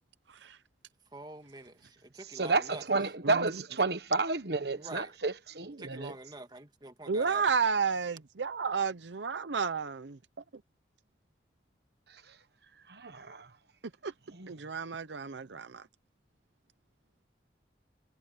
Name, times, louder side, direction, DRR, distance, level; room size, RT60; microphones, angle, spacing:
voice 1, 1.1-2.8 4.7-5.2 5.8-7.5, right 2 dB, 25° right, 1.6 m, -46 dB
voice 2, 2.3-6.1 12.9-13.5, right 3 dB, 65° right, 1.2 m, -31 dB
voice 3, 3.2-3.6 7.1-10.2 10.5-10.6 14.0-14.1 14.5-15.9, right 5 dB, 85° right, 0.7 m, -32 dB
head